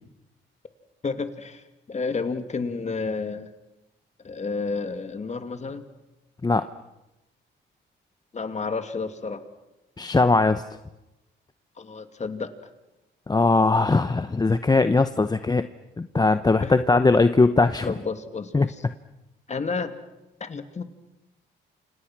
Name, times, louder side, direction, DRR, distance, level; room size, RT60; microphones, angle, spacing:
voice 1, 1.0-1.6 1.9-3.5 4.2-5.8 8.3-9.4 11.8-12.5 16.6-16.8 17.9-18.8 19.5-19.9 20.4-20.8, left 4 dB, 35° left, 8 dB, 2.6 m, -30 dB
voice 2, 10.0-10.6 13.3-15.6 16.0-17.9 18.5-18.7, left 3 dB, 20° left, 11 dB, 0.9 m, -20 dB
29.5 x 26.5 x 6.2 m, 0.98 s
cardioid pair, 90°, 20 cm